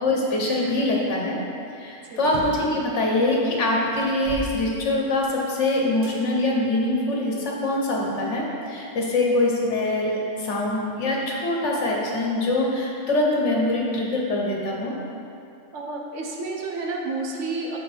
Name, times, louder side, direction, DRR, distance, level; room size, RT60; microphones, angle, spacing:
voice 1, 0.0-1.4 1.8-14.9, left 2 dB, 65° left, -2 dB, 1.3 m, -24 dB
sound 1, 2.2-2.7 3.4-3.5 3.9-5.4 6.0-6.2 6.9-7.9, right 1 dB, 40° right, 1.2 m, -37 dB
voice 2, 15.7-17.8, right 3 dB, 70° right, -1 dB, 1.2 m, -30 dB
6.9 x 5.1 x 4.5 m, 2.6 s
omnidirectional pair, 1.3 m